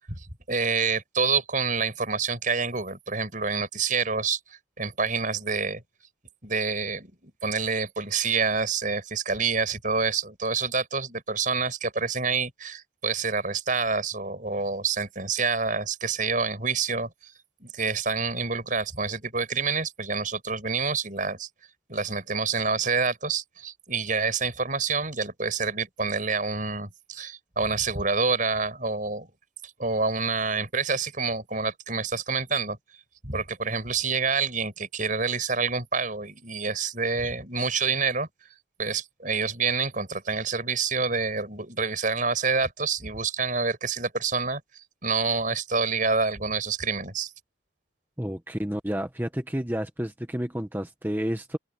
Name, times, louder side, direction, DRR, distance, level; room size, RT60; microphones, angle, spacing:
voice 1, 0.1-4.4 4.8-5.8 6.4-17.3 17.6-21.5 21.9-29.3 29.8-32.8 33.2-38.3 38.8-44.6 45.0-47.3, right 4 dB, 40° right, 6.4 m, -27 dB
voice 2, 48.2-51.6, equal, 10° right, 1.2 m, -30 dB
head